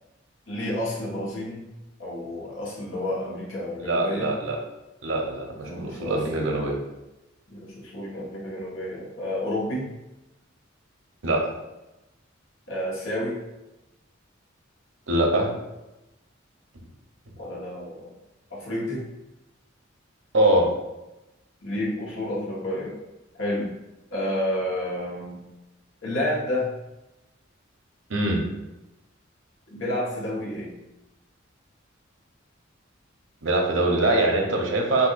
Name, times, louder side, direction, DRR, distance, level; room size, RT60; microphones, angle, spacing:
voice 1, 0.5-1.7 2.0-4.3 5.6-6.2 7.5-9.9 12.7-13.4 17.4-18.1 18.5-19.1 21.6-23.0 23.4-23.8 24.1-25.5 26.0-26.7 29.7-30.8, left 1 dB, 80° left, -5 dB, 1.6 m, -30 dB
voice 2, 3.8-4.6 5.0-6.8 11.2-11.5 15.1-15.5 20.3-20.7 28.1-28.4 33.4-35.1, right 1 dB, 85° right, 1 dB, 1.0 m, -23 dB
6.8 x 2.7 x 2.6 m, 0.98 s
head